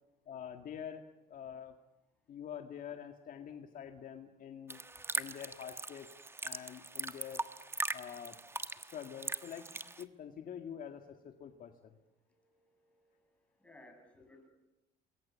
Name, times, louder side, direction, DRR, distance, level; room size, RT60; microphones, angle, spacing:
voice 1, 0.3-1.8 2.3-4.8 5.1-6.1 6.4-7.5 7.9-8.4 8.8-9.7 10.0-12.0, left 8 dB, 55° left, 5 dB, 2.0 m, -46 dB
sound 1, 4.7-10.0, right 2 dB, 15° right, 1.3 m, -40 dB
voice 2, 12.3-14.5, left 1 dB, 5° left, 4 dB, 7.4 m, -61 dB
28.0 x 22.0 x 8.5 m, 0.95 s
cardioid pair, 110°, 17 cm